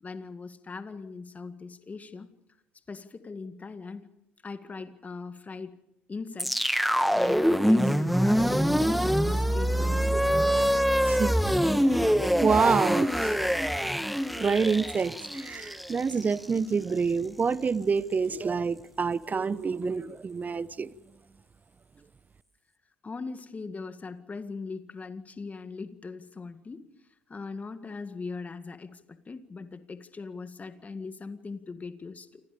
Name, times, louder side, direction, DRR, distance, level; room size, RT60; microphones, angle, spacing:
voice 1, 0.0-2.3 2.9-4.1 4.4-5.8 6.1-6.7 7.1-10.1 23.0-26.8 27.3-32.4, left 4 dB, 25° left, 1.9 m, -40 dB
sound 1, 6.4-16.6, equal, ahead, 1.5 m, -25 dB
voice 2, 11.0-13.5 14.4-20.9, right 5 dB, 30° right, 1.1 m, -28 dB
28.5 x 26.0 x 5.2 m
hypercardioid pair, 60°, 6 cm